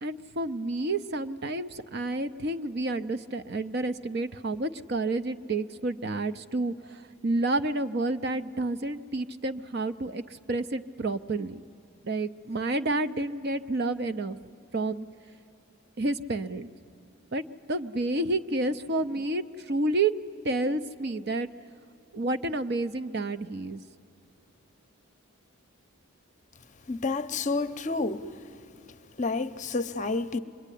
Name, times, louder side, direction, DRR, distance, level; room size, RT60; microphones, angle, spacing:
voice 1, 0.0-11.6 12.0-14.4 14.7-15.1 16.0-16.7 17.3-20.1 20.4-21.5 22.1-23.8, right 2 dB, 50° right, 0.6 m, -30 dB
voice 2, 26.9-28.3 29.2-30.4, left 3 dB, 35° left, 0.7 m, -29 dB
26.0 x 22.5 x 10.0 m
head